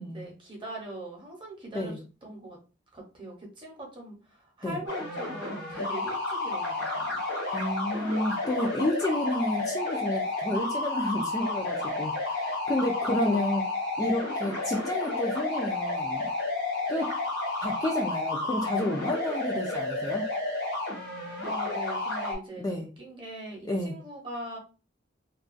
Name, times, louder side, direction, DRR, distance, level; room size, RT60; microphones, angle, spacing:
voice 1, 0.1-2.6 2.9-7.2 13.0-13.5 21.4-22.7 23.0-24.6, right 1 dB, 25° right, -1 dB, 0.8 m, -41 dB
sound 1, 4.9-22.4, left 2 dB, 70° left, 1.1 m, -31 dB
voice 2, 7.5-13.6 14.0-16.3 16.9-17.1 17.6-20.2 22.6-22.9 23.7-24.0, left 1 dB, 20° left, 1 dB, 0.3 m, -30 dB
2.3 x 2.2 x 2.5 m, 0.34 s
head